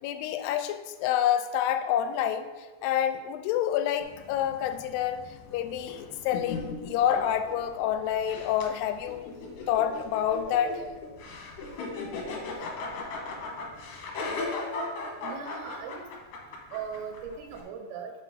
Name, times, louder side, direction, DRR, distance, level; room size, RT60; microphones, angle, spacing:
voice 1, 0.0-2.5 2.8-5.2 5.5-9.2 9.7-10.8, left 10 dB, 85° left, 8 dB, 2.6 m, -28 dB
sound 1, 4.0-17.6, left 3 dB, 65° left, 2.3 m, -38 dB
voice 2, 15.2-16.1 16.7-18.1, right 6 dB, 85° right, 4 dB, 2.8 m, -38 dB
7.6 x 4.2 x 5.3 m, 1.2 s
omnidirectional pair, 4.6 m